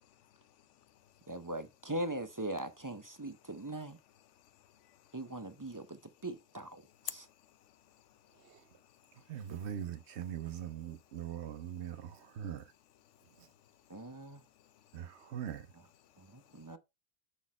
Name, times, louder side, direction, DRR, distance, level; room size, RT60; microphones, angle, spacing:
voice 1, 0.0-1.4 3.5-3.6 4.1-5.2 5.7-6.2 6.8-9.5 10.4-10.5 10.9-12.4 13.0-15.4 16.0-16.8, left 11 dB, 85° left, 1.0 m, -56 dB
voice 2, 1.3-4.0 5.1-7.2 13.9-14.4 16.2-16.8, right 1 dB, 20° right, 0.5 m, -41 dB
voice 3, 9.3-12.7 13.4-13.5 14.9-15.7, right 9 dB, 70° right, 1.0 m, -41 dB
6.3 x 6.1 x 4.2 m
omnidirectional pair, 1.2 m